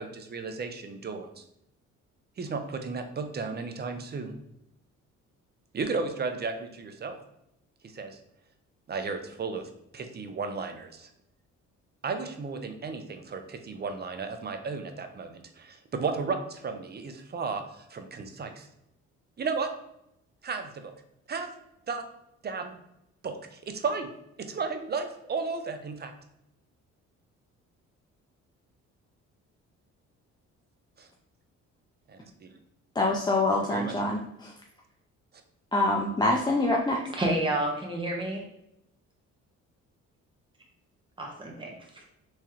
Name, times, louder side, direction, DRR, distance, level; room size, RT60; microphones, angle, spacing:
voice 1, 0.0-1.4 2.4-4.3 5.7-7.2 7.8-8.2 8.9-11.1 12.0-18.7 19.4-19.7 20.4-20.9 21.3-21.5 21.9-22.0 22.4-22.8 23.2-24.1 24.5-26.1 31.0-31.1 32.1-32.5 33.6-33.9, right 4 dB, 35° right, 6 dB, 0.5 m, -34 dB
voice 2, 33.0-34.5 35.7-37.0, left 2 dB, 15° left, -1 dB, 0.4 m, -25 dB
voice 3, 37.2-38.4 41.2-42.0, right 1 dB, 15° right, -1 dB, 1.0 m, -30 dB
3.6 x 3.1 x 2.9 m, 0.82 s
cardioid pair, 90°, 30 cm